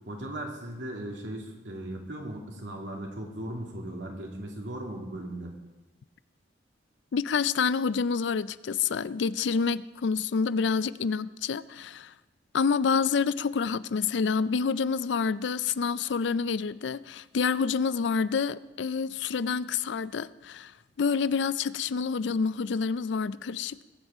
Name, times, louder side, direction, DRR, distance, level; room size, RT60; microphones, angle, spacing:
voice 1, 0.1-5.5, right 1 dB, 75° right, 2.5 m, -37 dB
voice 2, 7.1-12.1 12.5-23.8, left 5 dB, 70° left, 0.4 m, -28 dB
20.5 x 8.0 x 4.8 m
head